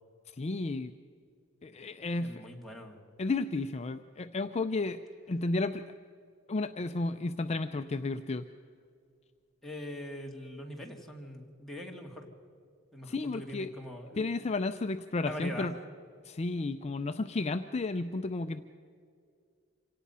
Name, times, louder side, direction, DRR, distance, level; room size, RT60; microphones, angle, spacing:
voice 1, 0.4-0.9 1.6-2.4 3.2-5.0 5.3-5.8 6.5-8.4 13.1-13.7 14.2-15.7 16.2-18.8, left 3 dB, 30° left, 9 dB, 0.5 m, -32 dB
voice 2, 2.1-3.0 9.6-12.3 12.9-14.3 15.2-15.7, left 1 dB, ahead, -1 dB, 2.1 m, -42 dB
26.5 x 17.5 x 5.6 m, 2.3 s
head